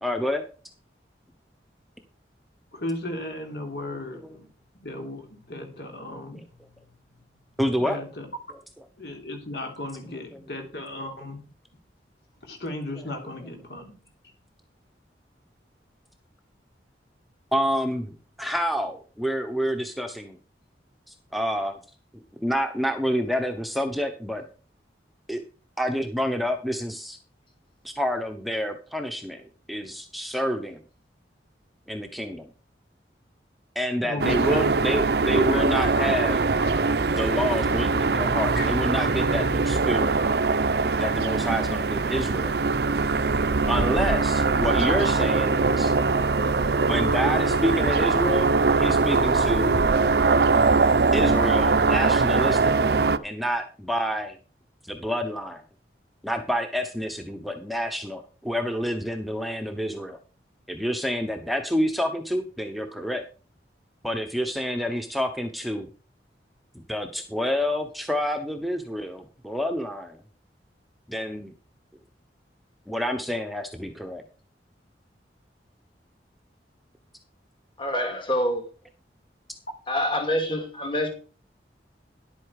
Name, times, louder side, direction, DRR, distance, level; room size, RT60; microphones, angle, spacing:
voice 1, 0.0-0.4 4.1-4.3 7.6-8.0 17.5-20.4 21.1-21.8 22.4-24.5 25.3-25.4 25.8-27.2 27.8-30.8 31.9-32.5 33.7-36.4 37.1-40.1 41.0-42.5 43.7-45.9 46.8-48.5 48.8-49.8 51.1-53.0 53.2-54.4 54.8-55.6 56.2-60.2 60.7-63.2 64.0-65.9 66.7-70.2 71.1-71.5 72.9-74.2, equal, ahead, 1.0 m, -28 dB
voice 2, 2.7-4.5 4.8-6.4 6.7-6.8 7.8-8.3 9.0-11.4 12.4-13.9 34.0-34.7 35.5-35.6 36.0-36.1 38.6-38.7, left 2 dB, 65° left, 3.4 m, -35 dB
sound 1, 34.2-53.2, right 4 dB, 65° right, 0.6 m, -22 dB
voice 3, 77.8-78.6 79.9-81.1, equal, 30° left, 2.4 m, -26 dB
11.0 x 8.6 x 4.8 m
head